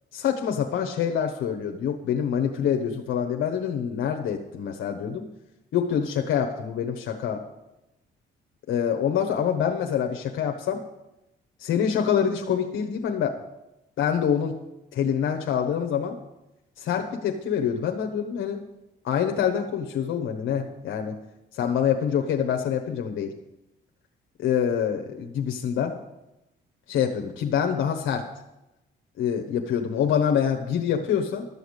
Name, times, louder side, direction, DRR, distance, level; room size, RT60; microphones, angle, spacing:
voice 1, 0.1-5.3 5.7-7.4 8.7-10.8 11.6-13.4 14.0-14.6 14.9-16.2 16.8-18.6 19.0-21.2 21.5-23.3 24.4-26.0 26.9-28.2 29.2-31.5, left 8 dB, 80° left, 3 dB, 1.2 m, -26 dB
12.5 x 7.0 x 8.1 m, 0.92 s
cardioid pair, 90°, 20 cm